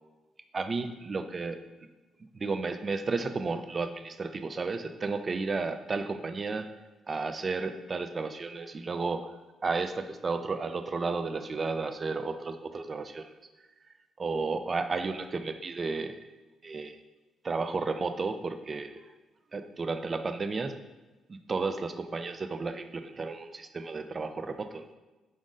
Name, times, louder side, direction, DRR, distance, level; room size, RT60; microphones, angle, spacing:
voice 1, 0.5-1.6 2.4-6.7 7.1-9.3 9.6-13.4 14.2-16.3 16.6-17.0 17.4-19.1 19.5-20.8 21.3-24.9, right 4 dB, 35° right, 9 dB, 0.3 m, -33 dB
4.9 x 2.5 x 3.8 m, 1.2 s
cardioid pair, 90°, 0 cm